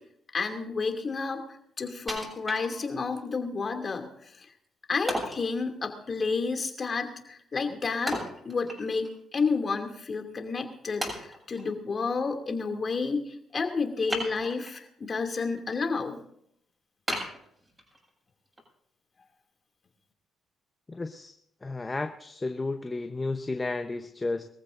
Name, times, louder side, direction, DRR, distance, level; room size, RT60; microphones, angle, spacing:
voice 1, 0.3-4.5 4.9-8.2 8.4-16.2, left 4 dB, 45° left, 4 dB, 2.6 m, -31 dB
Wood, 2.1-3.2 3.7-3.8 5.1-5.5 8.1-9.2 9.5-9.6 10.3-10.4 11.0-11.7 14.1-14.8 15.3-15.8 16.2-16.3 17.1-18.1 18.6-18.7, equal, 15° right, 7.5 m, -35 dB
voice 2, 20.9-21.3 21.6-24.5, left 3 dB, 25° left, 6 dB, 0.9 m, -32 dB
23.0 x 15.0 x 2.6 m, 0.69 s
supercardioid pair, 55°, 0 cm